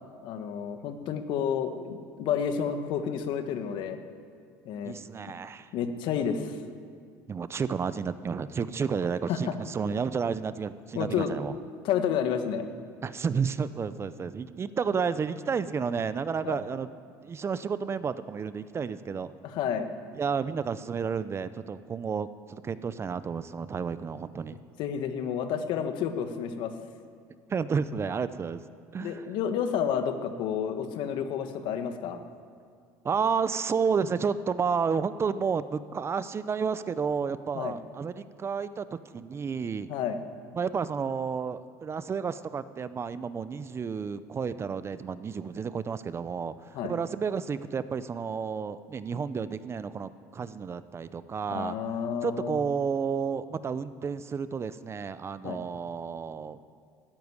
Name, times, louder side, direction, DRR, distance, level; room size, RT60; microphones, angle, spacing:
voice 1, 0.2-4.0 4.6-4.9 5.7-6.6 9.3-9.5 10.9-11.3 11.8-12.6 16.4-16.6 19.4-19.9 24.8-26.7 29.0-32.2 37.5-37.7 39.9-40.2 46.7-46.9 51.5-52.6 55.4-55.6, left 8 dB, 65° left, 8 dB, 1.5 m, -30 dB
voice 2, 4.8-5.7 7.3-11.6 13.0-16.9 17.2-19.3 20.2-24.6 27.5-28.6 28.9-29.3 33.0-39.9 40.5-51.7 52.2-56.6, right 6 dB, 30° right, 14 dB, 0.6 m, -31 dB
14.0 x 9.4 x 9.8 m, 2.3 s
supercardioid pair, 95°, 9 cm